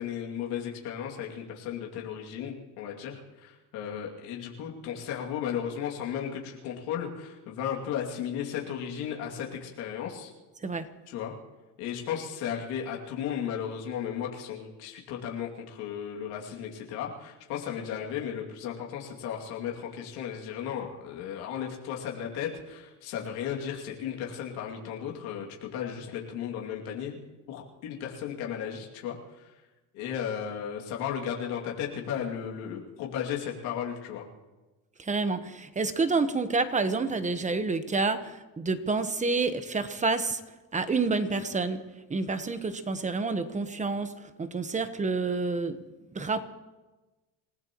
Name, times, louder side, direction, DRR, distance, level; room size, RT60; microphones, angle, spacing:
voice 1, 0.0-10.3 11.1-11.4 11.8-27.2 27.5-29.5 29.9-34.2, left 8 dB, 90° left, -1 dB, 2.6 m, -35 dB
voice 2, 35.0-40.4 40.7-41.8 42.1-45.8 46.1-46.4, right 4 dB, 20° right, 11 dB, 1.1 m, -28 dB
28.0 x 16.0 x 3.0 m, 1.1 s
cardioid pair, 120°, 37 cm